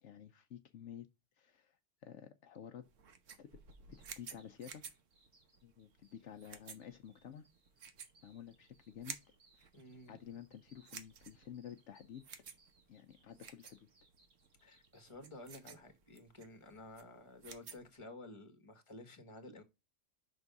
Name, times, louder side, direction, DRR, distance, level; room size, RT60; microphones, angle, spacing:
voice 1, 0.0-1.1 1.4-2.9 3.4-3.5 3.9-4.8 5.6-7.5 8.2-9.2 9.5-9.6 10.1-12.2 12.9-13.9, left 9 dB, 70° left, 0.9 m, -51 dB
sound 1, 2.8-18.0, right 6 dB, 80° right, 1.3 m, -54 dB
sound 2, 3.7-15.6, right 3 dB, 50° right, 1.8 m, -72 dB
voice 2, 9.7-10.2 14.6-19.6, left 2 dB, 25° left, 1.4 m, -53 dB
6.0 x 3.5 x 5.3 m
omnidirectional pair, 1.3 m